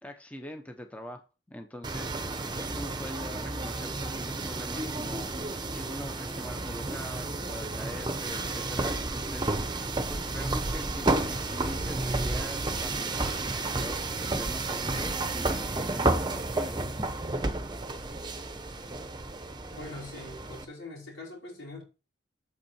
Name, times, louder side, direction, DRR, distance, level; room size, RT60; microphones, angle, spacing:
voice 1, 0.0-1.2 1.5-16.8, equal, 5° left, 5 dB, 0.9 m, -43 dB
sound 1, 1.8-20.6, right 2 dB, 20° right, 0.9 m, -31 dB
voice 2, 19.7-21.8, left 2 dB, 90° left, -2 dB, 5.2 m, -43 dB
8.4 x 7.3 x 4.4 m, 0.32 s
head